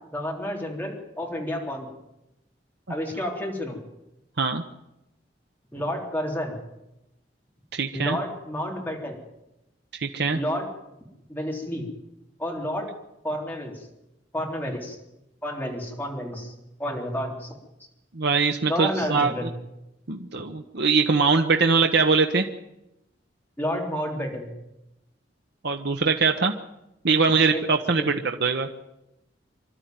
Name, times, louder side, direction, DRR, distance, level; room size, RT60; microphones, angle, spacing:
voice 1, 0.1-1.9 2.9-3.8 5.7-6.6 7.9-9.2 10.3-10.7 11.3-11.9 12.4-12.9 13.2-13.9 14.3-15.0 15.4-16.5 16.8-17.6 18.7-19.5 23.6-24.5 27.5-27.6 28.0-28.1, equal, 10° left, -1 dB, 3.7 m, -30 dB
voice 2, 7.7-8.2 9.9-10.4 18.1-19.3 20.1-22.5 25.6-26.5 27.0-28.7, right 4 dB, 65° right, 5 dB, 1.0 m, -22 dB
26.0 x 12.5 x 9.3 m, 0.92 s
head